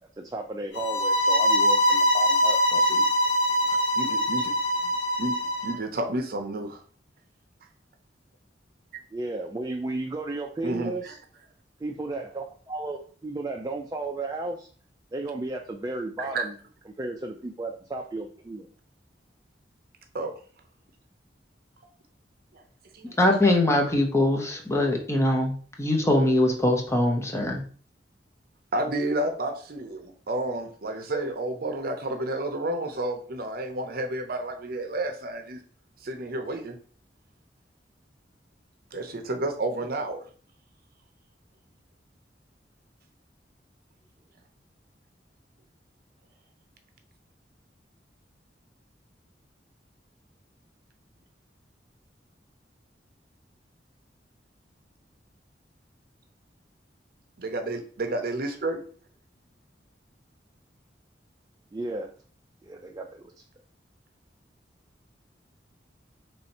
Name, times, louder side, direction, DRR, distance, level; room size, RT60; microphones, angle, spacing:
voice 1, 0.2-2.6 9.1-11.2 11.8-14.7 15.1-16.6 17.0-18.7 61.7-62.1 62.6-63.4, right 2 dB, 20° right, 2 dB, 0.4 m, -34 dB
sound 1, 0.7-5.7, equal, 75° left, 0.8 m, -23 dB
voice 2, 2.7-3.0 3.7-4.5 5.2-6.8 10.6-11.1 16.2-16.5 20.1-20.3 22.9-23.2 28.7-35.6 36.0-36.8 38.9-40.2 57.4-58.8, right 2 dB, 55° right, 6 dB, 0.6 m, -31 dB
voice 3, 23.2-27.6, left 1 dB, 15° left, 1 dB, 0.6 m, -22 dB
3.2 x 2.7 x 4.1 m, 0.44 s
head